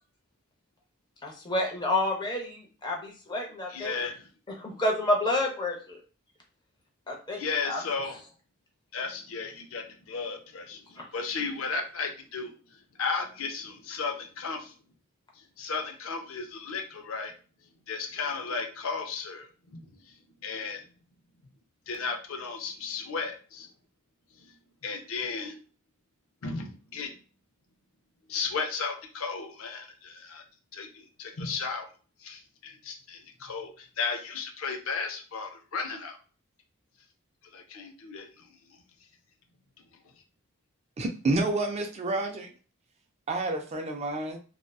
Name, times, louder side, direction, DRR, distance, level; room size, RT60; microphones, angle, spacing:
voice 1, 1.2-3.9 4.6-5.8 7.1-7.4 7.7-7.8, left 1 dB, 20° left, 0.6 m, -29 dB
voice 2, 3.7-4.3 7.3-8.2 8.9-14.7 15.3-17.3 17.9-20.2 20.4-20.9 21.9-23.7 24.3-24.5 24.8-25.5 26.4-27.1 28.3-30.4 30.7-31.9 32.2-36.2 37.5-38.5, left 4 dB, 85° left, 0.5 m, -35 dB
voice 3, 41.0-42.5 43.3-44.4, right 2 dB, 30° right, 0.3 m, -29 dB
2.6 x 2.1 x 2.3 m
head